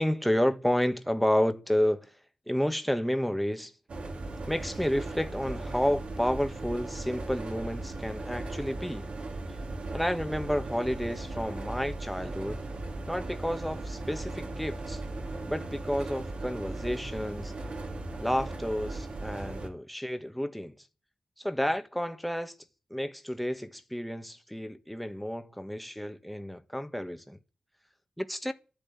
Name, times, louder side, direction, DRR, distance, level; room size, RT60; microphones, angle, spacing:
voice 1, 0.0-2.1 2.5-3.7 4.5-9.1 9.9-12.6 13.1-15.0 15.5-17.5 18.2-20.8 21.4-22.5 22.9-27.4 28.2-28.5, equal, ahead, 1.5 m, -30 dB
sound 1, 3.9-19.7, right 2 dB, 65° right, 3.2 m, -37 dB
12.5 x 10.5 x 9.1 m
cardioid pair, 80°, 2 cm